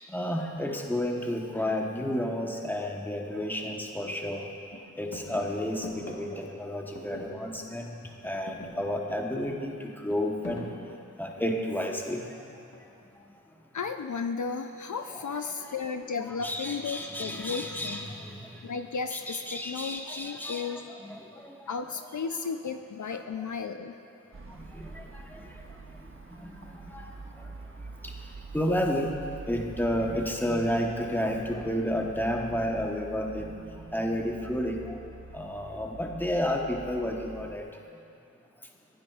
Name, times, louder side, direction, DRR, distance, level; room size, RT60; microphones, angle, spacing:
voice 1, 0.1-4.5 5.0-8.0 8.2-9.7 10.0-10.7 11.2-12.2 15.1-15.2 15.6-15.7 16.4-18.4 19.1-21.6 24.7-24.9 26.4-27.1 28.5-29.1 29.5-33.6 33.9-34.9 35.3-37.6, equal, 5° left, 1 dB, 1.0 m, -31 dB
sound 1, 3.4-3.5 3.8-4.4 4.7-7.9 8.1-11.8 12.7-13.2, left 1 dB, 55° left, 1.4 m, -45 dB
voice 2, 13.7-18.0 18.6-20.9 21.7-24.0, left 5 dB, 70° left, 7 dB, 0.4 m, -34 dB
sound 2, 24.3-37.6, right 3 dB, 40° right, 0.7 m, -46 dB
15.0 x 9.5 x 2.4 m, 2.5 s
wide cardioid pair, 40°, 31 cm